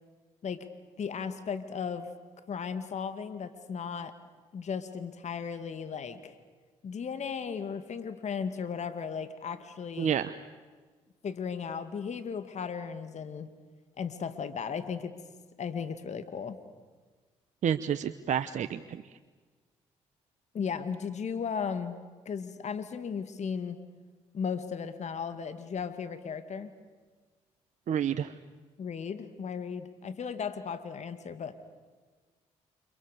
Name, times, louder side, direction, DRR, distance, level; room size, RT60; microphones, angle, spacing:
voice 1, 1.0-2.1 2.5-4.1 4.5-6.4 6.8-10.1 11.2-13.5 14.0-15.1 15.6-16.6 20.5-22.0 22.3-23.8 24.3-26.7 28.8-31.5, left 6 dB, 55° left, 11 dB, 2.2 m, -36 dB
voice 2, 10.0-10.3 17.6-18.8 27.9-28.3, right 9 dB, 60° right, 10 dB, 1.1 m, -29 dB
30.0 x 27.5 x 6.8 m, 1.4 s
hypercardioid pair, 50°, 14 cm